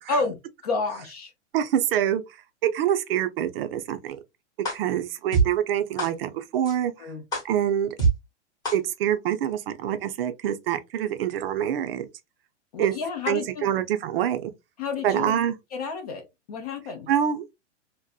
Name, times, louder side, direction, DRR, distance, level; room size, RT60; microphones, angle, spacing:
voice 1, 0.1-1.3 7.0-7.2 12.7-13.7 14.8-15.4 15.7-17.1, left 4 dB, 35° left, 0.4 m, -30 dB
voice 2, 1.5-2.2 2.6-4.2 4.7-7.1 7.4-7.9 8.7-12.1 12.8-12.9 13.3-14.5 15.0-15.6 17.1-17.4, right 10 dB, 55° right, 0.5 m, -25 dB
sound 1, 4.6-4.7 5.3-5.4 6.0-6.1 6.6-6.7 7.3-7.4 8.0-8.1 8.6-8.7, right 4 dB, 10° left, 0.8 m, -22 dB
2.6 x 2.1 x 2.3 m
hypercardioid pair, 160°, 36 cm